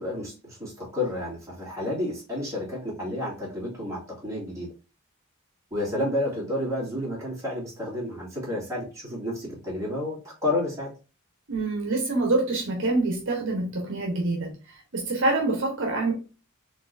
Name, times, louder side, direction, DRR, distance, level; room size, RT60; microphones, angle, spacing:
voice 1, 0.0-4.7 5.7-10.9, left 1 dB, 15° right, 2.2 m, -30 dB
voice 2, 11.5-16.1, right 2 dB, 60° right, 1.0 m, -26 dB
4.4 x 3.2 x 2.6 m
head